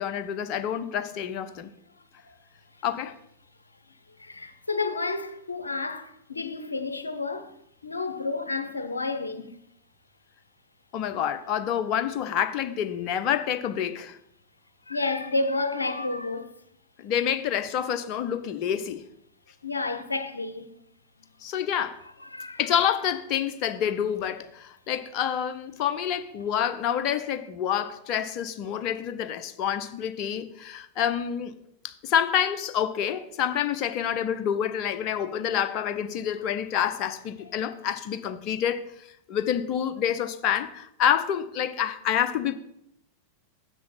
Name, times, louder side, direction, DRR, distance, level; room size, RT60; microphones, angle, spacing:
voice 1, 0.0-1.7 2.8-3.1 10.9-14.2 17.0-19.0 21.4-22.0 22.6-31.5 31.8-38.8 39.3-42.5, left 9 dB, 40° left, 0.8 m, -27 dB
voice 2, 4.2-7.5 7.8-9.5 14.9-16.5 19.6-20.7 22.3-22.6, left 3 dB, 80° left, 0.8 m, -30 dB
7.5 x 6.1 x 5.8 m
figure-of-eight pair, 90°, 0 cm